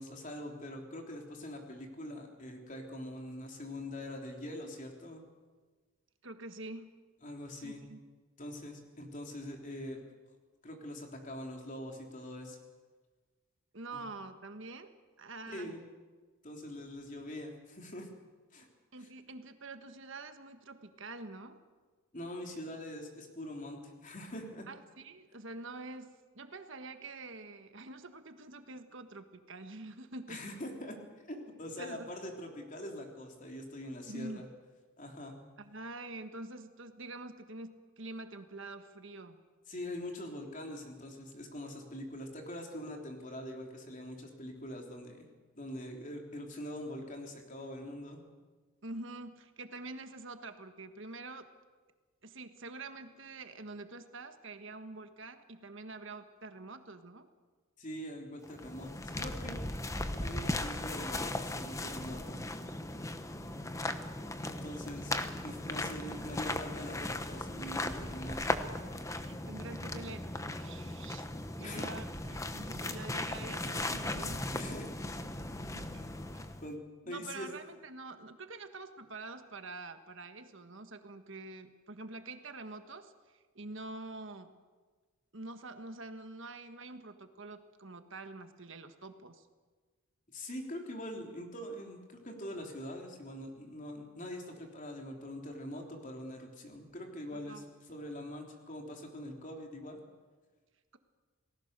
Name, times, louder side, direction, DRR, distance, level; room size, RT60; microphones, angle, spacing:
voice 1, 0.0-5.2 7.2-7.8 8.4-10.0 10.6-12.6 13.9-14.1 15.5-15.8 16.4-18.1 18.5-18.7 19.0-19.1 22.1-24.7 30.3-30.9 31.3-34.5 35.0-35.4 39.7-45.3 45.5-48.2 57.8-59.6 60.2-62.4 64.4-65.1 65.4-68.6 71.6-71.9 73.9-74.0 74.5-74.9 76.0-76.1 76.6-76.8 77.1-77.5 90.3-100.0, left 1 dB, 35° left, 2 dB, 3.4 m, -43 dB
voice 2, 6.2-6.9 7.5-8.0 13.7-14.9 15.2-15.8 18.9-21.6 24.7-30.5 31.8-32.2 34.1-34.5 35.6-39.4 48.8-51.5 52.2-57.3 68.9-71.3 71.6-74.5 75.7-76.0 76.3-76.5 77.0-84.6 85.3-89.5 97.3-97.7, right 2 dB, 60° right, 8 dB, 1.5 m, -46 dB
sound 1, 58.4-76.7, left 2 dB, 15° left, 1.0 m, -38 dB
28.5 x 19.0 x 6.8 m, 1.4 s
head